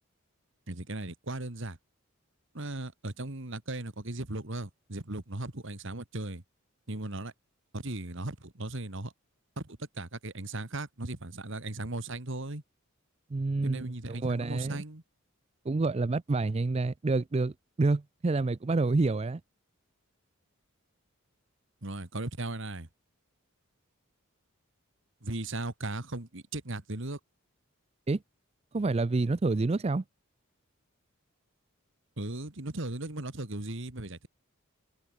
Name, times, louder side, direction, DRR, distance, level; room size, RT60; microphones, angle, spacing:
voice 1, 0.7-1.8 2.5-6.4 6.9-7.3 7.7-9.1 9.6-12.6 13.6-15.0 21.8-22.9 25.2-27.2 32.2-34.3, right 2 dB, 60° right, 2.0 m, -37 dB
voice 2, 13.3-13.8 14.1-14.8 15.7-17.5 17.8-19.4 28.1-28.2 28.7-30.0, right 3 dB, 30° right, 0.4 m, -28 dB
head